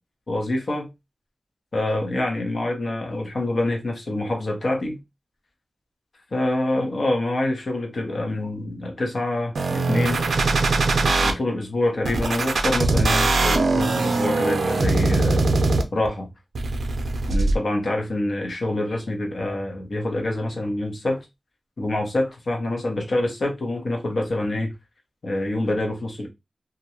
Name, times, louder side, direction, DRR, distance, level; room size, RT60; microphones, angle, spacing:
voice 1, 0.3-0.9 1.7-5.0 6.3-10.2 11.2-15.4 15.9-16.3 17.3-21.2 21.8-24.7 25.2-26.3, left 1 dB, 55° left, 0.9 m, -26 dB
sound 1, 9.6-11.3 12.1-16.1 16.6-17.5, right 3 dB, 85° right, 0.4 m, -21 dB
2.5 x 2.2 x 2.9 m
wide cardioid pair, 115°, 0 cm